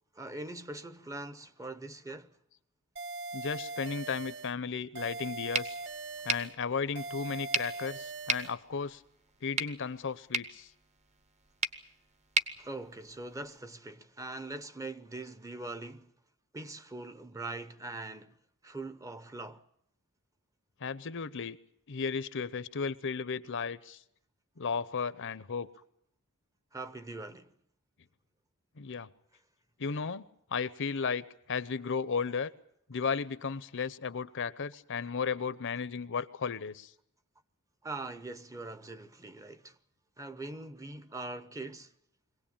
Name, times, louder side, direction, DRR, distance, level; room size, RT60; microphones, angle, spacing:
voice 1, 0.1-2.3 12.6-16.1 16.5-18.4 18.6-19.6 26.7-27.5 37.8-39.8 40.2-41.9, right 2 dB, 15° right, 0.8 m, -42 dB
sound 1, 3.0-4.5 5.0-6.5 7.0-8.5, right 3 dB, 55° right, 1.3 m, -41 dB
voice 2, 3.3-5.8 6.2-9.0 9.4-10.7 20.8-21.6 21.9-24.0 24.6-25.7 28.8-29.1 29.8-30.3 30.5-32.5 32.9-36.9, left 5 dB, 60° left, 0.8 m, -34 dB
sound 2, 5.5-13.6, right 3 dB, 30° right, 1.1 m, -37 dB
23.0 x 17.5 x 8.8 m
head